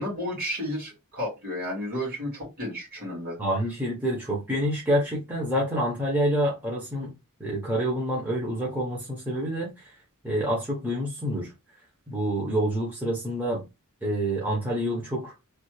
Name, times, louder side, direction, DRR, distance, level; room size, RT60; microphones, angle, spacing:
voice 1, 0.0-3.4, left 1 dB, 40° right, 2.0 m, -32 dB
voice 2, 3.4-7.1 7.4-9.9 10.2-11.5 12.1-13.6 14.0-15.3, equal, 10° right, 0.9 m, -27 dB
3.3 x 2.3 x 3.1 m
head